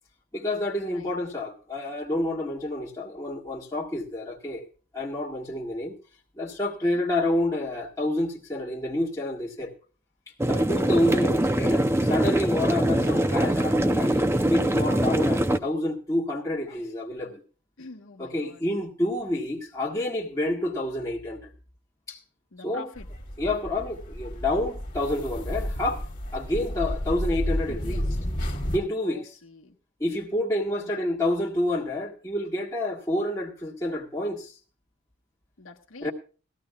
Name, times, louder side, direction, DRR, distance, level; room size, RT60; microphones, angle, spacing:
voice 1, 0.3-4.6 4.9-5.9 6.4-9.7 10.5-17.4 18.2-21.5 22.1-22.2 22.6-22.9 23.4-26.1 26.3-28.0 28.7-29.4 30.0-34.5 36.0-36.1, left 1 dB, 15° left, 1.7 m, -28 dB
sound 1, 10.4-15.6, right 1 dB, 10° right, 0.6 m, -23 dB
voice 2, 17.8-18.6 22.5-23.1 27.7-28.0 29.0-29.7 30.7-31.0 35.6-36.1, left 3 dB, 65° left, 1.3 m, -45 dB
sound 2, 22.9-28.8, equal, 40° left, 2.1 m, -31 dB
19.5 x 14.0 x 2.3 m
head